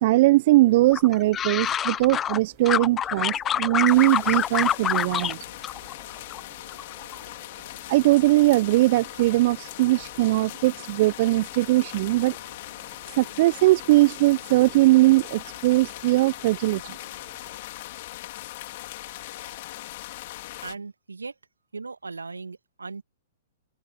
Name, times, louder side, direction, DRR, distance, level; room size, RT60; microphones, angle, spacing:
voice 1, 0.0-5.4 7.9-12.4 13.1-17.0, right 18 dB, 45° right, 1.0 m, -20 dB
sound 1, 0.9-2.4 2.7-5.3 5.6-6.4 6.7-7.2, left 9 dB, 20° left, 0.8 m, -26 dB
sound 2, 3.8-20.7, left 17 dB, 50° left, 4.1 m, -40 dB
voice 2, 20.6-21.3 21.7-23.0, right 4 dB, 80° right, 2.2 m, -37 dB
open air
figure-of-eight pair, 110°, 0 cm